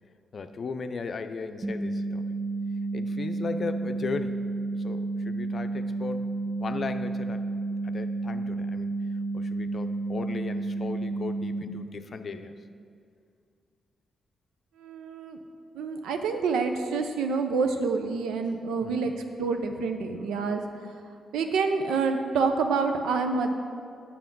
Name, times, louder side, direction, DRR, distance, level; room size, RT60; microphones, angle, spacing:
voice 1, 0.3-2.3 2.9-4.5 4.7-6.3 6.6-7.4 7.8-8.9 9.3-12.6 18.8-19.1, left 4 dB, 55° left, 9 dB, 0.5 m, -36 dB
sound 1, 1.6-11.6, right 3 dB, 50° right, 0.9 m, -31 dB
voice 2, 14.8-15.4 15.7-20.6 21.3-23.5, right 4 dB, 80° right, 6 dB, 0.6 m, -27 dB
7.5 x 6.8 x 5.3 m, 2.4 s
hypercardioid pair, 40°, 0 cm